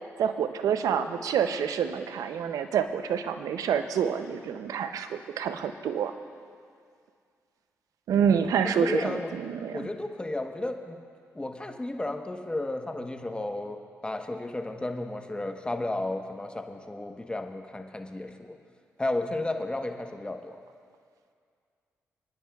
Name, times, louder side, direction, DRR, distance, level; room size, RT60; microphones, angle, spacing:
voice 1, 0.2-6.1 8.1-9.9, right 7 dB, 80° right, 9 dB, 0.6 m, -27 dB
voice 2, 8.8-9.3 9.7-11.0 11.3-18.6 19.0-20.6, left 2 dB, 15° left, 5 dB, 1.1 m, -33 dB
27.5 x 9.9 x 2.4 m, 2.2 s
supercardioid pair, 55°, 6 cm